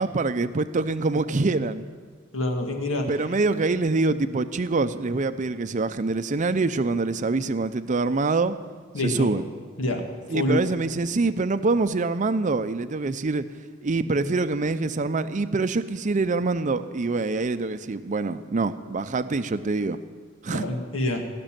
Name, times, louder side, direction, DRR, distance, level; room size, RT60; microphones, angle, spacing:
voice 1, 0.0-1.8 3.1-8.6 9.0-9.5 10.3-13.4 13.8-20.0 20.4-20.6, right 3 dB, 40° right, 11 dB, 0.5 m, -25 dB
voice 2, 2.3-3.0 8.9-9.3 9.8-10.7 20.5-21.2, left 1 dB, 85° left, 3 dB, 2.0 m, -26 dB
17.5 x 6.8 x 9.0 m, 1.5 s
head